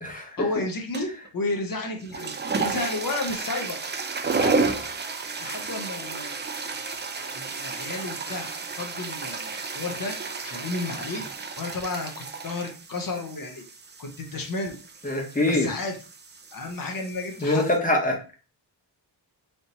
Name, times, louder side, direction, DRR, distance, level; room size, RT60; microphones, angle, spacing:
voice 1, 0.4-3.8 4.2-4.7 5.2-6.4 7.3-11.2 11.6-12.1 12.4-13.6 14.0-14.8 15.5-16.0 16.5-17.6, left 2 dB, 50° left, 3 dB, 0.8 m, -32 dB
sound 1, 0.9-1.3 1.9-17.8, right 4 dB, 25° right, 0.3 m, -32 dB
voice 2, 15.0-15.7 17.4-18.2, left 2 dB, 20° left, 1 dB, 0.9 m, -23 dB
3.5 x 2.8 x 3.9 m, 0.35 s
wide cardioid pair, 175°, 45 cm